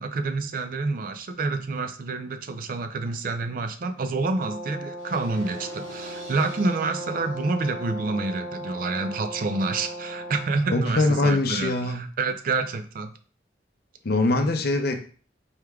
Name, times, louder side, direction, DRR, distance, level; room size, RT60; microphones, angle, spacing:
voice 1, 0.0-13.2, right 3 dB, 50° right, 9 dB, 0.4 m, -28 dB
Brass instrument, 4.2-10.5, right 1 dB, 35° right, 1.6 m, -37 dB
sound 1, 5.0-11.0, left 1 dB, 90° right, 1.8 m, -48 dB
voice 2, 10.7-12.0 14.0-15.0, left 2 dB, 60° left, 5 dB, 0.6 m, -23 dB
4.5 x 3.3 x 2.3 m, 0.41 s
head